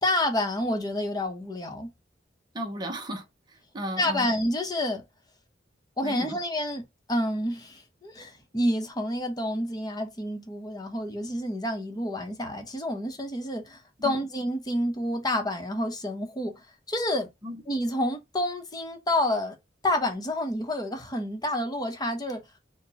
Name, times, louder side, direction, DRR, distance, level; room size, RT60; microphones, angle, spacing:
voice 1, 0.0-1.9 4.0-5.0 6.0-6.8 7.1-17.3 17.7-19.6 19.8-22.4, left 1 dB, 20° left, 0.9 m, -29 dB
voice 2, 2.5-4.3 6.0-6.4 14.0-14.2 17.4-17.6, equal, 25° right, 0.8 m, -35 dB
4.4 x 2.3 x 4.1 m
head